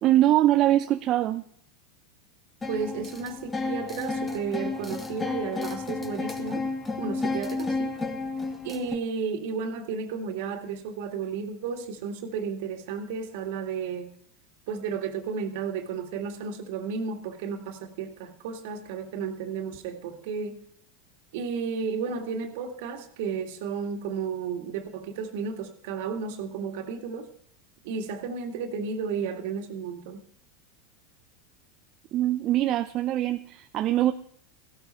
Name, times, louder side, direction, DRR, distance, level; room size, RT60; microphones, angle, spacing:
voice 1, 0.0-1.4 32.1-34.1, right 13 dB, 45° right, 8 dB, 0.7 m, -23 dB
sound 1, 2.6-8.9, left 3 dB, 20° left, 2.1 m, -32 dB
voice 2, 2.7-6.6 7.0-7.9 8.6-14.1 14.7-20.6 21.3-27.3 27.8-30.2, right 6 dB, 65° right, 5 dB, 2.1 m, -33 dB
16.0 x 12.5 x 4.4 m, 0.63 s
hypercardioid pair, 85°, 0 cm